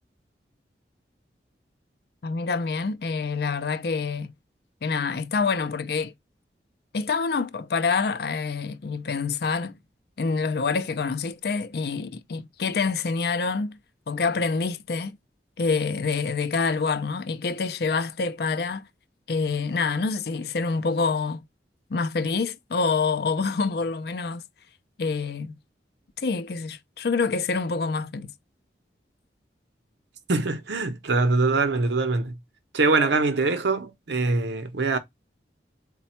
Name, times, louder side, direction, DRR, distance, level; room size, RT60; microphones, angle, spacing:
voice 1, 2.2-4.3 4.8-6.1 6.9-9.8 10.2-13.8 14.1-15.2 15.6-18.8 19.3-21.4 21.9-24.4 25.0-25.5 26.2-28.3, left 4 dB, 60° left, 0.4 m, -26 dB
voice 2, 30.3-32.4 32.7-35.0, right 3 dB, 75° right, 0.7 m, -23 dB
4.1 x 2.2 x 4.2 m
head